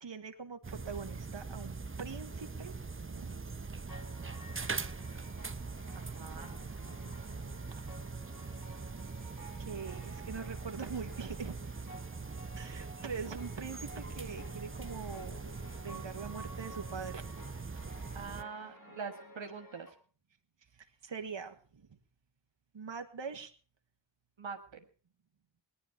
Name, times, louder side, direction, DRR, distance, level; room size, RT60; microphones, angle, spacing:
voice 1, 0.0-3.4 9.6-11.6 12.6-15.4 15.8-18.0 20.7-21.9 22.7-23.5, right 5 dB, 70° right, 5 dB, 1.7 m, -43 dB
sound 1, 0.6-18.4, right 4 dB, 30° right, 0.9 m, -42 dB
sound 2, 3.9-19.9, right 1 dB, 45° left, 4.5 m, -53 dB
voice 2, 5.9-6.6 18.1-19.9 24.4-24.9, right 5 dB, 85° right, 4 dB, 1.7 m, -44 dB
18.5 x 11.5 x 5.9 m, 0.40 s
cardioid pair, 45°, 45 cm